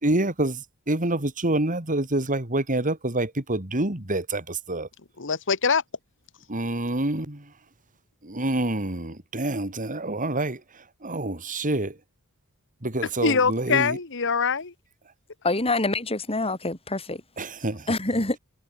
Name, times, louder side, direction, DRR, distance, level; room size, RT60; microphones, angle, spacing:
voice 1, 0.0-4.9 6.5-7.5 8.2-12.0 12.8-14.0 17.4-17.9, right 2 dB, 35° right, 3.3 m, -27 dB
voice 2, 5.2-5.8 13.2-14.7, left 5 dB, 60° left, 1.6 m, -23 dB
voice 3, 15.4-17.2 17.9-18.4, left 2 dB, 25° left, 4.4 m, -26 dB
head